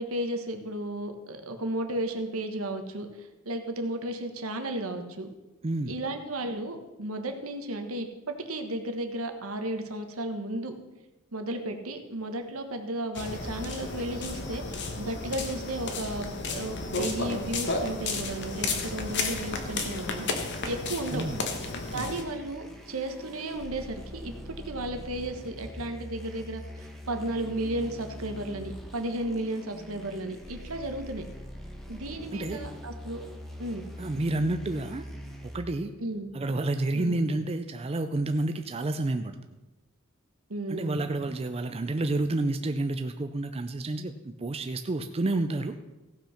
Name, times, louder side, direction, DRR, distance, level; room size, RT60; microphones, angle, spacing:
voice 1, 0.0-5.3 5.9-10.7 11.3-20.3 20.6-21.2 21.9-31.2 31.9-33.2 33.6-33.8 36.0-36.3 36.9-37.2 40.5-41.0, right 1 dB, 75° right, 6 dB, 1.3 m, -34 dB
voice 2, 5.6-5.9 21.1-21.4 21.9-22.1 32.3-32.6 34.0-35.0 35.5-35.9 36.3-39.4 40.7-45.7, right 2 dB, 30° right, 7 dB, 0.5 m, -29 dB
sound 1, 13.1-22.2, left 3 dB, 55° left, 1.3 m, -33 dB
sound 2, 21.8-35.6, equal, ahead, 1.3 m, -43 dB
15.5 x 5.8 x 5.8 m, 1.1 s
head